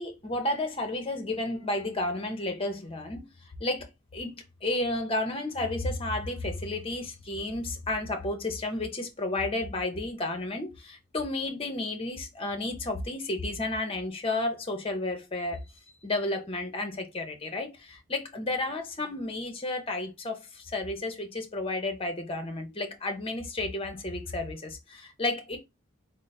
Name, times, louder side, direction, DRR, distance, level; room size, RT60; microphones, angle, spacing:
voice 1, 0.0-3.3 3.6-15.6 16.0-25.6, left 2 dB, 25° left, 0.8 m, -32 dB
3.9 x 2.1 x 4.0 m
head